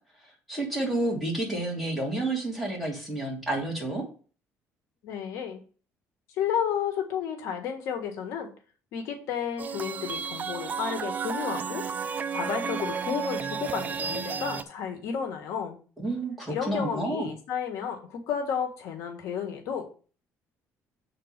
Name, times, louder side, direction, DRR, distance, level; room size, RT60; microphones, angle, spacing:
voice 1, 0.5-4.0 16.0-17.3, right 2 dB, ahead, -3 dB, 2.9 m, -30 dB
voice 2, 5.0-5.6 6.3-8.5 8.9-11.8 12.3-15.8 16.5-19.9, left 7 dB, 70° left, 5 dB, 1.5 m, -32 dB
sound 1, 9.6-14.6, right 6 dB, 30° right, 0.5 m, -32 dB
7.8 x 4.0 x 6.6 m, 0.39 s
cardioid pair, 150°, 5 cm